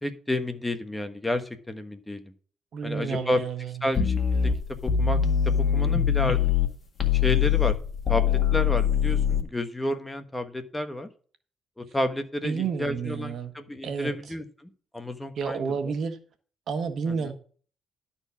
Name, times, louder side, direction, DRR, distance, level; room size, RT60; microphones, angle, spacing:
voice 1, 0.0-2.3 2.8-3.4 3.8-4.5 4.8-6.4 7.1-7.8 8.1-11.1 11.8-15.9 17.1-17.3, left 1 dB, 10° left, 1.3 m, -31 dB
voice 2, 2.7-3.7 12.4-13.5 13.8-14.1 15.4-16.2 16.7-17.3, right 6 dB, 60° right, 1.5 m, -30 dB
sound 1, 4.0-6.7 7.0-9.4, left 8 dB, 35° left, 1.8 m, -23 dB
11.5 x 4.3 x 7.1 m
cardioid pair, 90°, 0 cm